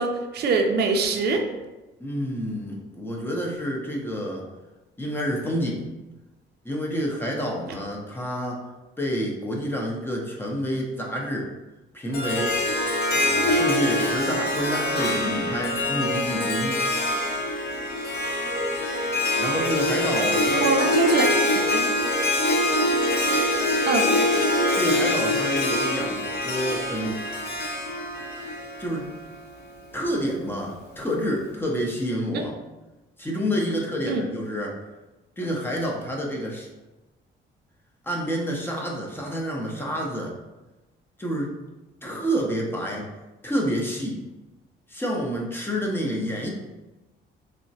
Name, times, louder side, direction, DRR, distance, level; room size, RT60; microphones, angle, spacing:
voice 1, 0.0-1.4 20.6-21.3 21.7-21.9 23.9-24.1 34.1-34.3, right 4 dB, 55° right, 4 dB, 0.4 m, -23 dB
voice 2, 2.0-4.4 5.0-5.8 6.6-8.6 9.0-11.5 11.9-12.6 13.1-16.8 19.4-20.7 24.7-27.2 28.8-29.1 29.9-32.5 33.2-34.8 35.4-36.7 38.0-40.3 41.2-41.5 42.0-43.1 43.4-44.2 44.9-46.5, equal, 10° left, -2 dB, 0.6 m, -28 dB
Harp, 12.1-29.4, left 1 dB, 55° left, 0.7 m, -24 dB
3.6 x 2.1 x 2.7 m, 1.1 s
cardioid pair, 90°, 20 cm